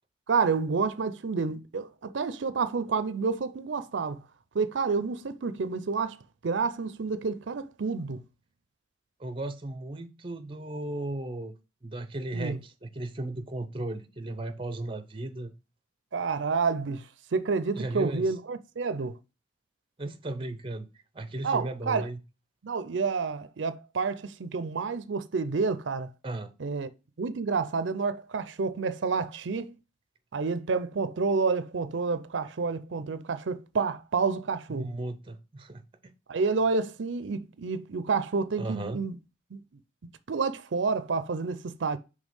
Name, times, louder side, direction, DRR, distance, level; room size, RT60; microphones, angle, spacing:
voice 1, 0.3-4.2 4.5-6.2 6.4-8.2 12.3-12.6 16.1-17.1 17.3-19.2 21.4-22.1 22.6-26.1 26.6-26.9 27.2-29.7 30.3-35.0 36.3-39.2 39.5-39.6 40.3-42.0, right 4 dB, 80° right, 0.5 m, -29 dB
voice 2, 9.2-11.5 11.8-15.5 17.7-18.3 20.0-20.9 21.1-22.2 26.2-26.5 34.7-36.1 38.6-39.0, right 2 dB, 25° right, 0.6 m, -35 dB
5.3 x 3.3 x 5.3 m
head